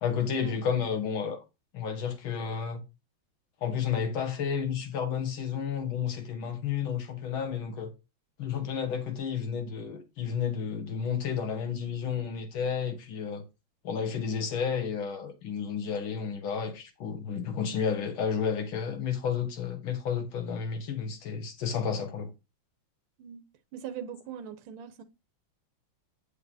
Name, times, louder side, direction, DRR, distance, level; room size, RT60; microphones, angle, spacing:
voice 1, 0.0-1.4 1.7-2.8 3.6-7.9 8.4-13.4 13.8-22.3, left 7 dB, 70° left, 2.1 m, -31 dB
voice 2, 23.7-25.0, right 8 dB, 75° right, 1.6 m, -40 dB
7.7 x 6.7 x 2.6 m
omnidirectional pair, 2.3 m